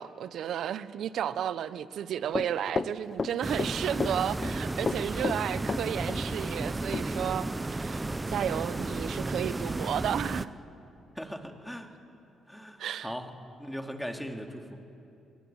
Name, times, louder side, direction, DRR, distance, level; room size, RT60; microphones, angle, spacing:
voice 1, 0.0-10.5 12.8-13.1, right 9 dB, 70° right, 0.9 m, -33 dB
Run, 2.3-3.7 4.0-4.5 4.9-6.2 6.5-6.6 6.9-7.1, left 4 dB, 35° left, 0.7 m, -31 dB
sound 1, 3.4-10.5, right 2 dB, 20° right, 0.7 m, -33 dB
voice 2, 11.2-11.9 12.5-13.3 13.6-14.9, equal, ahead, 2.6 m, -39 dB
23.5 x 22.0 x 8.9 m
cardioid pair, 90°, 0 cm